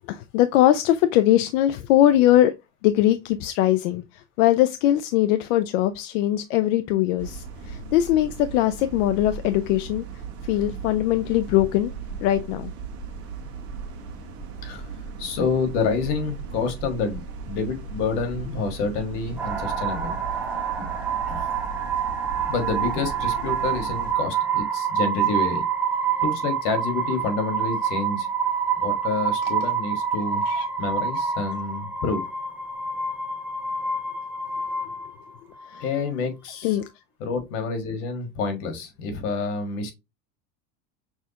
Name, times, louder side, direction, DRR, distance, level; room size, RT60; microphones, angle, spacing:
voice 1, 0.1-2.5 2.8-10.1 10.4-11.9 12.2-12.7 30.5-30.7 35.7-35.8 36.6-36.8, left 13 dB, 90° left, 0.5 m, -21 dB
sound 1, 7.2-24.1, right 5 dB, 40° right, 1.3 m, -37 dB
voice 2, 15.2-17.2 17.5-20.2 20.6-20.8 21.3-21.4 22.4-25.6 26.2-28.3 28.8-30.4 30.8-32.2 35.8-36.8 37.2-39.9, left 4 dB, 70° left, 1.6 m, -28 dB
sound 2, 19.4-36.0, right 6 dB, 5° right, 0.4 m, -27 dB
6.3 x 2.4 x 2.8 m
cardioid pair, 155°, 37 cm